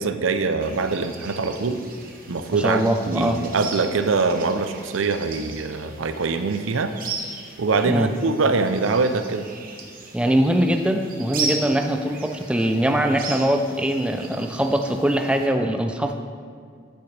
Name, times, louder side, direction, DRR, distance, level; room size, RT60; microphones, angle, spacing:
voice 1, 0.0-1.8 2.3-6.9 7.6-9.5, right 4 dB, 75° right, 9 dB, 0.5 m, -23 dB
sound 1, 0.6-15.5, right 4 dB, 45° right, 1.1 m, -37 dB
voice 2, 2.5-3.4 7.9-8.1 10.1-16.1, right 1 dB, 5° right, 5 dB, 0.3 m, -22 dB
10.0 x 8.6 x 3.3 m, 2.1 s
head